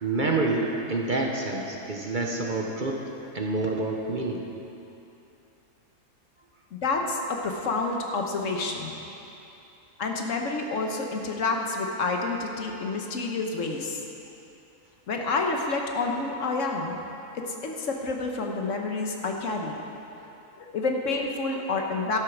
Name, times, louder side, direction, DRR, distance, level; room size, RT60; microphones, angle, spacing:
voice 1, 0.0-3.0 3.3-4.4, right 2 dB, 40° right, 0 dB, 0.9 m, -27 dB
voice 2, 6.7-8.9 10.0-14.0 15.1-17.0 17.3-19.8 20.6-22.2, left 3 dB, 65° left, 2 dB, 1.4 m, -29 dB
12.0 x 8.2 x 6.0 m, 2.9 s
omnidirectional pair, 1.4 m